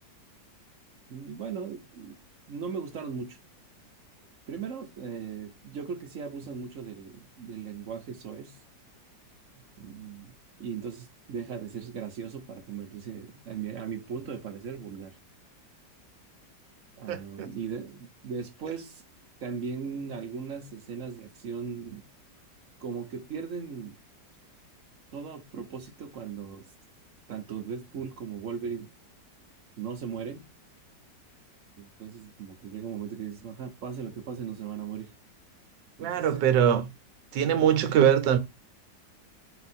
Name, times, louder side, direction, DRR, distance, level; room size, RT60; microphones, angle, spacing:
voice 1, 1.1-2.2 2.5-3.4 4.5-8.6 9.8-10.3 10.6-15.1 17.0-19.0 19.4-22.0 22.8-24.0 25.1-26.6 27.3-28.9 29.8-30.4 31.8-35.1 36.0-36.4, right 6 dB, 55° right, 1.0 m, -38 dB
voice 2, 17.1-17.5 36.0-36.9 37.3-38.4, right 9 dB, 75° right, 1.4 m, -22 dB
4.5 x 2.4 x 4.1 m
omnidirectional pair, 2.0 m